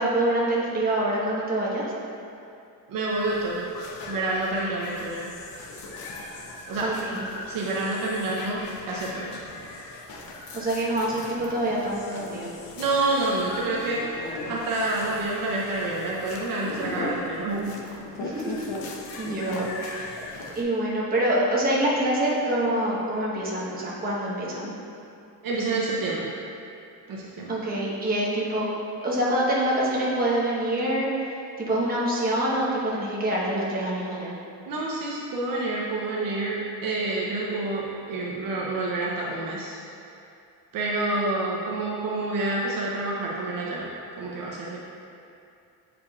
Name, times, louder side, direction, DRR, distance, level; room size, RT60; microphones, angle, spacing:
voice 1, 0.0-1.8 6.8-7.2 10.5-12.5 18.2-18.6 19.2-24.7 27.5-28.7 29.0-31.3 31.6-34.3, right 1 dB, 25° right, -6 dB, 1.1 m, -26 dB
voice 2, 2.9-3.7 4.1-5.3 6.7-7.1 7.5-9.4 12.8-17.7 25.4-26.3 27.1-27.5 34.7-39.8 40.7-43.9 44.2-44.8, right 2 dB, 60° right, -4 dB, 0.7 m, -28 dB
sound 1, 3.1-20.6, left 2 dB, 65° left, 0.8 m, -39 dB
8.1 x 5.0 x 2.4 m, 2.6 s
cardioid pair, 160°, 39 cm